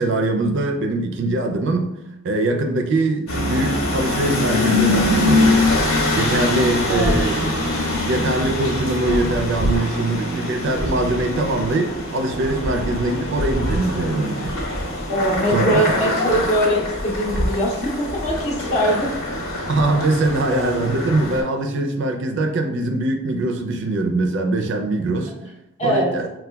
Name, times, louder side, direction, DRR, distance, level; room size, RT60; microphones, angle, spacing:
voice 1, 0.0-1.9 2.2-5.5 6.1-7.6 8.0-14.6 15.5-15.9 19.7-25.3 25.8-26.3, right 2 dB, 55° right, 4 dB, 0.4 m, -22 dB
sound 1, 3.3-21.4, left 1 dB, 90° left, 1.3 m, -23 dB
voice 2, 6.9-7.2 15.1-19.2 25.8-26.1, equal, 30° left, -1 dB, 0.6 m, -22 dB
5.4 x 2.2 x 2.2 m, 0.92 s
head